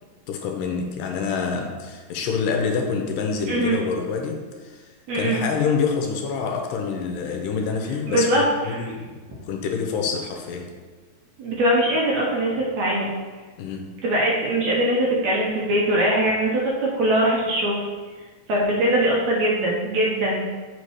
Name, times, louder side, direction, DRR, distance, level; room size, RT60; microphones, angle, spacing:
voice 1, 0.3-4.8 5.1-10.8 13.6-14.0, left 5 dB, 80° left, 3 dB, 2.2 m, -27 dB
voice 2, 3.5-3.8 5.1-5.4 8.1-8.9 11.4-13.1 14.0-17.8 18.5-20.5, right 1 dB, 65° right, -3 dB, 2.0 m, -22 dB
7.1 x 4.3 x 4.8 m, 1.4 s
omnidirectional pair, 4.0 m